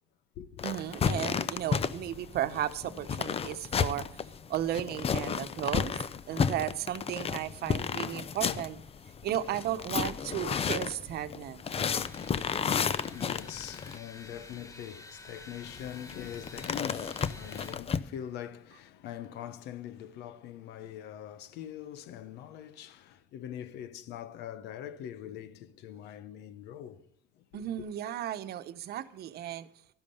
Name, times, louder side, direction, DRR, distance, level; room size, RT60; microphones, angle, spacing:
sound 1, 0.6-14.0 15.6-18.0, left 6 dB, 35° left, 0.7 m, -32 dB
voice 1, 0.6-4.2 4.5-6.0 6.3-8.8 9.2-11.8 27.5-29.7, right 12 dB, 70° right, 1.0 m, -34 dB
sound 2, 12.0-17.8, left 2 dB, 20° left, 1.4 m, -50 dB
voice 2, 12.5-27.1 27.4-27.5 27.7-27.8, left 10 dB, 85° left, 1.0 m, -43 dB
12.5 x 12.0 x 5.6 m
cardioid pair, 110°, 17 cm